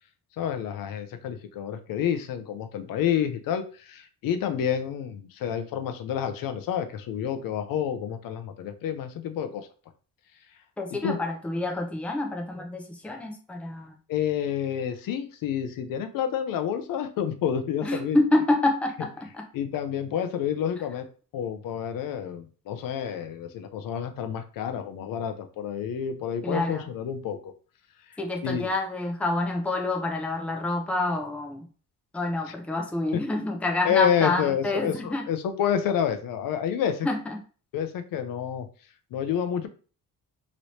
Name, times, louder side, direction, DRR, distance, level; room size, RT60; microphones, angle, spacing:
voice 1, 0.4-9.7 10.9-11.2 14.1-18.2 19.5-21.0 21.3-27.5 28.4-28.7 33.1-33.2 33.8-37.1 37.7-38.7 39.1-39.7, left 8 dB, 75° left, 8 dB, 0.6 m, -29 dB
voice 2, 10.8-13.9 17.8-19.4 26.4-26.9 28.2-31.7 32.1-35.3 37.0-37.4, left 2 dB, 5° left, 2 dB, 0.5 m, -27 dB
3.1 x 3.0 x 2.7 m, 0.38 s
cardioid pair, 140°, 34 cm